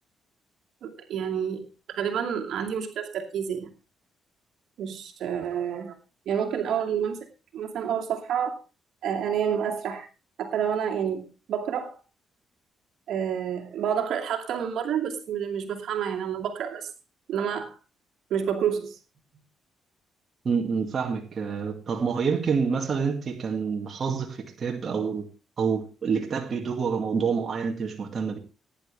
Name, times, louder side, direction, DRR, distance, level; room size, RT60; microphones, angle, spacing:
voice 1, 0.8-3.7 4.8-5.9 6.3-7.2 7.5-8.6 9.0-10.1 10.4-12.0 13.1-16.9 17.3-17.8 18.3-19.0, right 8 dB, 70° right, 2.5 m, -29 dB
voice 2, 20.4-25.3 25.6-28.4, right 5 dB, 45° right, 2.2 m, -27 dB
18.0 x 10.5 x 3.4 m
cardioid pair, 90°, 0 cm